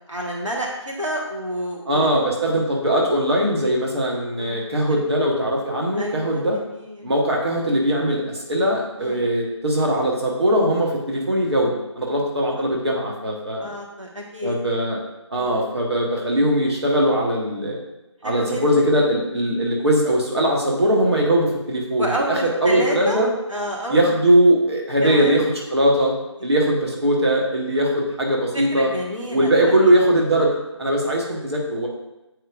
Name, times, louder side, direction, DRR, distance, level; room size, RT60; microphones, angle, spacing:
voice 1, 0.1-2.1 4.4-4.6 4.9-5.0 5.9-7.1 9.0-9.3 12.6-12.7 13.6-14.6 15.4-15.7 18.2-18.6 22.0-23.2 23.5-24.0 25.0-25.3 28.5-29.5 29.8-29.9, equal, 85° right, -2 dB, 1.5 m, -29 dB
voice 2, 1.8-6.6 7.0-13.7 14.4-15.0 15.3-17.8 18.2-23.3 23.9-26.1 26.4-28.9 29.3-31.9, right 1 dB, 60° right, -2 dB, 1.5 m, -20 dB
8.5 x 4.7 x 2.5 m, 0.98 s
figure-of-eight pair, 165°, 16 cm